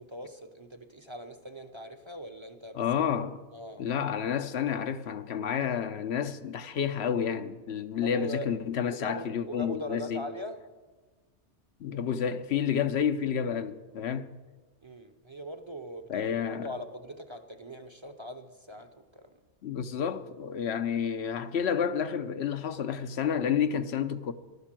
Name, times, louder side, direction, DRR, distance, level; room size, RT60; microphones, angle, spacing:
voice 1, 0.0-2.8 3.5-3.9 8.0-8.5 8.9-10.6 14.8-19.3, equal, 30° right, 0.8 m, -41 dB
voice 2, 2.7-3.4 3.8-10.3 11.8-14.3 16.1-16.7 19.6-24.3, left 8 dB, 70° left, 1.0 m, -30 dB
14.5 x 11.5 x 7.5 m
omnidirectional pair, 1.1 m